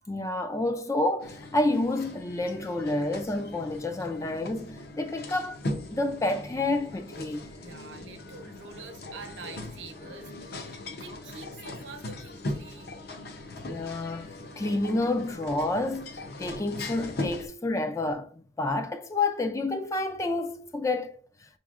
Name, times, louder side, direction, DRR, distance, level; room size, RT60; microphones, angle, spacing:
voice 1, 0.1-5.6 5.9-7.5 13.7-21.2, left 2 dB, 15° left, 0.3 m, -29 dB
sound 1, 1.2-17.5, left 1 dB, 55° left, 0.6 m, -39 dB
voice 2, 7.6-13.0, right 4 dB, 80° right, 0.8 m, -46 dB
6.0 x 3.0 x 2.4 m
head